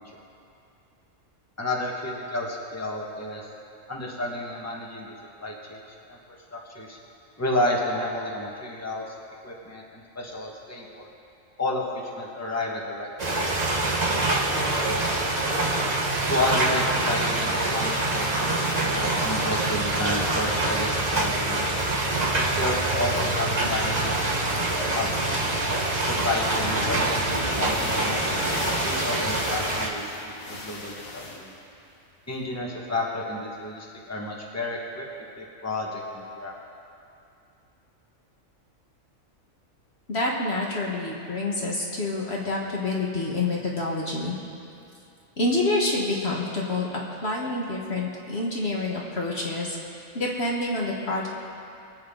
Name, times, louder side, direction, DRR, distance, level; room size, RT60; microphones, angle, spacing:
voice 1, 1.6-3.5 3.9-5.1 5.4-5.8 6.1-6.2 6.5-7.0 7.4-9.1 9.4-11.1 11.6-13.4 14.3-15.1 16.3-21.6 22.4-25.6 26.2-28.3 28.8-31.0 31.3-31.5 32.3-35.0 35.4-36.5, left 1 dB, 10° left, -3 dB, 1.6 m, -31 dB
sound 1, 13.2-29.9, right 2 dB, 30° right, 1.4 m, -25 dB
sound 2, 27.5-31.6, left 2 dB, 85° left, 1.9 m, -36 dB
voice 2, 40.1-44.3 45.4-46.9 47.2-49.8 50.1-51.3, left 2 dB, 50° left, -3 dB, 1.6 m, -27 dB
23.5 x 8.2 x 3.9 m, 2.6 s
omnidirectional pair, 1.4 m